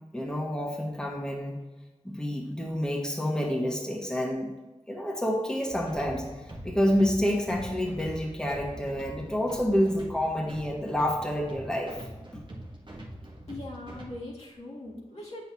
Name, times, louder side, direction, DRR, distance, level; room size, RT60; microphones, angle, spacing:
voice 1, 0.1-1.6 2.0-4.5 4.9-6.2 6.6-12.0 12.3-12.4, equal, 5° left, -1 dB, 1.5 m, -28 dB
sound 1, 5.7-14.1, equal, 45° right, 1.4 m, -43 dB
voice 2, 13.5-15.4, left 2 dB, 65° left, -5 dB, 2.1 m, -40 dB
7.8 x 6.3 x 2.8 m, 1.1 s
cardioid pair, 40°, 12 cm